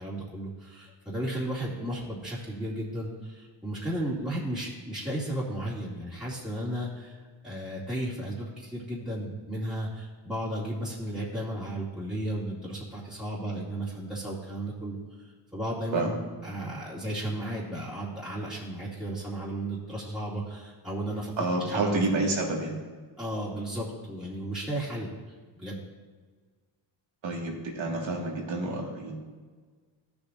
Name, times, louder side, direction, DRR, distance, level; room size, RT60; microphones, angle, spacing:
voice 1, 0.0-16.1 16.4-21.4 21.7-21.9 23.2-25.1 25.6-25.8, right 1 dB, ahead, -8 dB, 2.5 m, -34 dB
voice 2, 21.4-22.8 27.2-29.2, right 2 dB, 75° right, -1 dB, 2.2 m, -29 dB
14.0 x 7.0 x 2.7 m, 1.5 s
cardioid pair, 80°, 46 cm